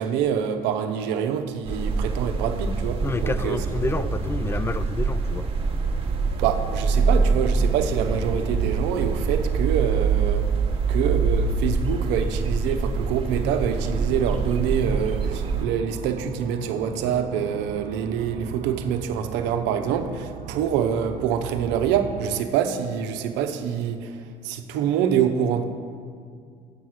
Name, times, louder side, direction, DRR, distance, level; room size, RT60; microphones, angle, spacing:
voice 1, 0.0-3.6 4.0-4.1 6.3-10.5 10.9-24.2 24.4-25.6, right 8 dB, 80° right, 8 dB, 0.7 m, -26 dB
sound 1, 1.6-15.6, right 4 dB, 30° right, 1.1 m, -25 dB
voice 2, 3.0-5.5, left 3 dB, 15° left, 14 dB, 0.4 m, -29 dB
sound 2, 13.5-22.4, right 10 dB, 50° right, 0.4 m, -38 dB
7.1 x 6.9 x 6.3 m, 2.2 s
supercardioid pair, 80°, 18 cm